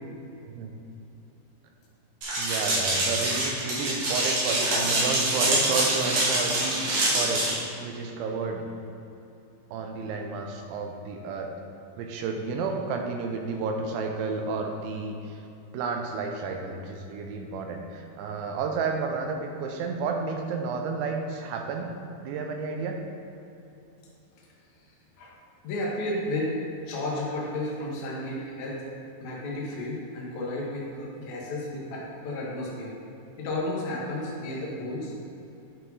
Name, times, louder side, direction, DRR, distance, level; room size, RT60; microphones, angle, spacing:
Hail Falling on Concrete, 2.2-7.5, right 1 dB, 55° right, 2.6 m, -25 dB
voice 1, 2.4-7.5 7.8-8.7 9.7-11.5 12.0-15.4 15.7-21.9 22.2-23.0 31.9-32.0 34.7-34.9, right 4 dB, 85° right, 3 dB, 3.0 m, -31 dB
voice 2, 25.6-26.5 26.9-28.8 29.2-32.9 33.4-35.1, left 1 dB, 80° left, -4 dB, 1.6 m, -32 dB
9.6 x 4.8 x 4.0 m, 2.9 s
omnidirectional pair, 5.2 m